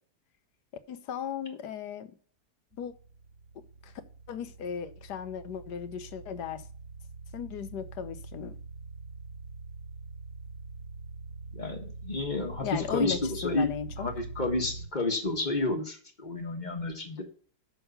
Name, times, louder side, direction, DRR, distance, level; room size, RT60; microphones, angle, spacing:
voice 1, 0.9-2.1 2.8-2.9 3.8-3.9 4.3-6.6 7.3-8.5 12.6-14.1, left 8 dB, 75° left, 12 dB, 1.4 m, -36 dB
sound 1, 2.7-14.9, right 3 dB, 15° right, 1.9 m, -44 dB
voice 2, 11.5-13.7 14.0-17.2, left 2 dB, 30° left, 4 dB, 1.6 m, -31 dB
6.7 x 6.3 x 6.6 m, 0.43 s
omnidirectional pair, 1.8 m